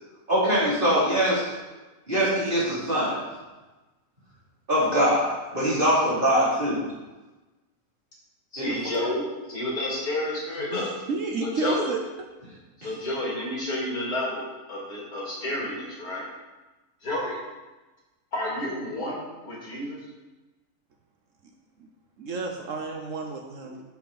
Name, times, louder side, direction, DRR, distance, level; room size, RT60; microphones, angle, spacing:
voice 1, 0.3-1.5 2.1-3.2 4.7-6.8 8.6-8.7, equal, 35° right, -9 dB, 3.7 m, -23 dB
voice 2, 8.5-10.9 11.4-11.9 12.8-16.2 17.0-17.4 18.3-20.0, left 1 dB, 80° left, -6 dB, 3.5 m, -30 dB
voice 3, 10.7-12.0 21.8-21.9 22.2-23.8, right 3 dB, 60° right, 2 dB, 1.1 m, -31 dB
8.4 x 7.4 x 4.3 m, 1.1 s
omnidirectional pair, 1.6 m